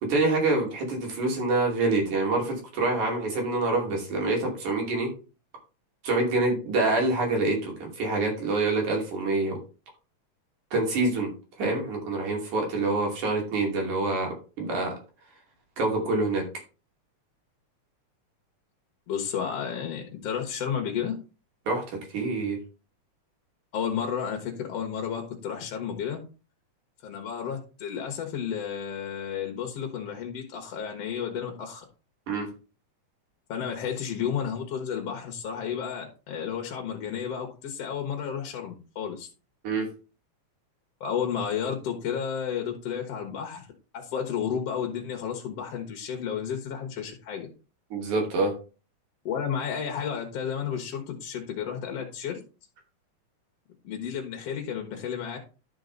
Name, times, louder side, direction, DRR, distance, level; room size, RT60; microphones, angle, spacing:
voice 1, 0.0-5.1 6.0-9.6 10.7-11.3 11.6-14.9 15.8-16.4 21.7-22.6 32.3-32.5 39.6-39.9 47.9-48.5, right 2 dB, 80° right, 0 dB, 4.1 m, -26 dB
voice 2, 19.1-21.2 23.7-26.2 27.0-31.8 33.5-39.3 41.0-43.7 43.9-47.5 49.3-52.4 53.8-55.4, left 7 dB, 60° left, 2 dB, 2.2 m, -32 dB
12.0 x 4.8 x 3.9 m, 0.34 s
omnidirectional pair, 3.4 m